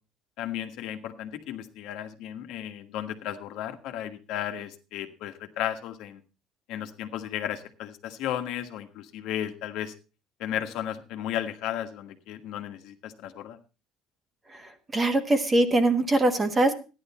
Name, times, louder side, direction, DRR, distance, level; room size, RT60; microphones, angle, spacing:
voice 1, 0.4-6.2 6.7-9.9 10.4-13.6, left 11 dB, 60° left, 6 dB, 1.4 m, -34 dB
voice 2, 14.9-16.8, right 2 dB, 15° right, 8 dB, 1.4 m, -22 dB
13.5 x 10.5 x 4.2 m, 0.32 s
cardioid pair, 160°, 0 cm